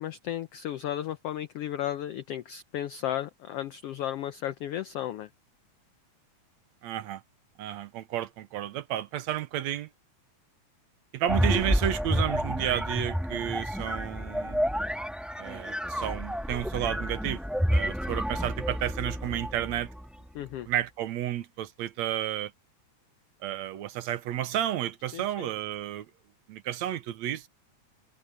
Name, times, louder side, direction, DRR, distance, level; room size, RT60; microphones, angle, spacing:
voice 1, 0.0-5.3 20.3-20.7 25.1-25.5, left 11 dB, 85° left, 1.3 m, -34 dB
voice 2, 6.8-7.2 7.6-9.9 11.1-14.6 15.4-17.4 17.7-19.9 20.7-22.5 23.4-26.1 26.5-27.5, right 12 dB, 70° right, 2.0 m, -32 dB
sound 1, 11.3-20.1, equal, ahead, 0.7 m, -30 dB
omnidirectional pair, 3.5 m